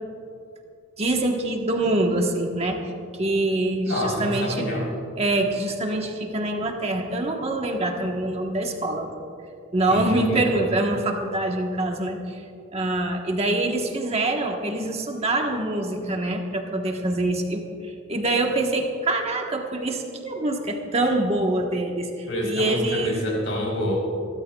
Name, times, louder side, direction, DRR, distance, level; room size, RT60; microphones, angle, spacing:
voice 1, 1.0-2.8 3.2-4.7 5.2-9.1 9.7-12.4 12.7-23.2, right 2 dB, 30° right, 2 dB, 1.3 m, -25 dB
voice 2, 3.8-4.8 9.9-10.6 22.3-24.0, left 1 dB, 65° left, -3 dB, 3.9 m, -27 dB
27.0 x 13.0 x 2.4 m, 2.5 s
head